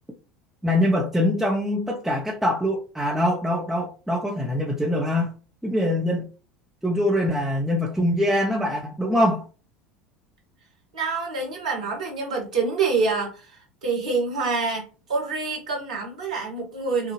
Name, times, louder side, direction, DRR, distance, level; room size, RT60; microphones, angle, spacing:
voice 1, 0.6-5.3 5.6-6.3 6.8-9.4, left 1 dB, 5° right, 0.9 m, -23 dB
voice 2, 10.9-17.1, right 4 dB, 70° right, 1.7 m, -26 dB
6.5 x 2.4 x 3.2 m
figure-of-eight pair, 70°, 4 cm